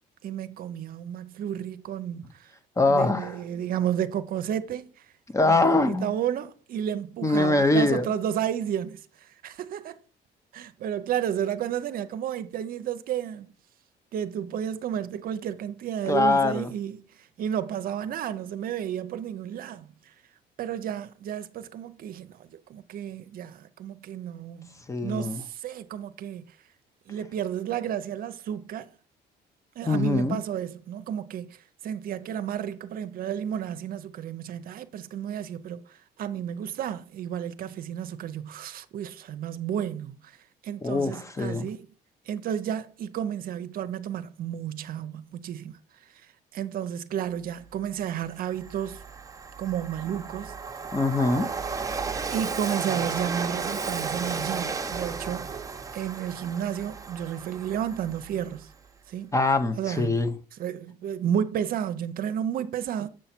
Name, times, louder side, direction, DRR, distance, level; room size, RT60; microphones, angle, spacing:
voice 1, 0.2-2.5 2.9-5.1 5.4-10.0 10.5-13.5 14.1-20.1 20.6-24.8 25.0-26.6 27.1-28.9 29.8-40.4 40.6-41.9 42.3-45.8 46.1-49.0 49.6-50.5 52.3-55.6 55.9-58.7 59.1-59.3 59.8-60.2 60.6-63.1, right 9 dB, 60° right, 0.6 m, -32 dB
voice 2, 2.8-3.4 5.3-6.1 7.2-8.1 16.1-16.7 24.9-25.4 29.8-30.4 40.8-41.7 50.9-51.5 59.3-60.3, left 2 dB, 20° left, 0.7 m, -23 dB
Train, 47.8-47.9 48.3-58.7, right 4 dB, 20° right, 0.8 m, -34 dB
7.6 x 5.5 x 4.3 m
cardioid pair, 110°, 17 cm